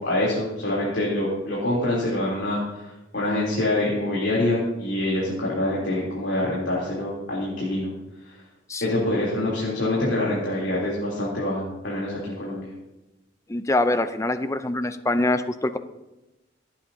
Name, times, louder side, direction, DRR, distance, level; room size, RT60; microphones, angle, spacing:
voice 1, 0.0-7.9 8.2-8.4 8.8-12.7, left 1 dB, 75° left, -6 dB, 3.4 m, -25 dB
voice 2, 13.5-15.8, left 2 dB, 15° left, 10 dB, 0.6 m, -24 dB
26.0 x 8.6 x 2.8 m, 1.0 s
head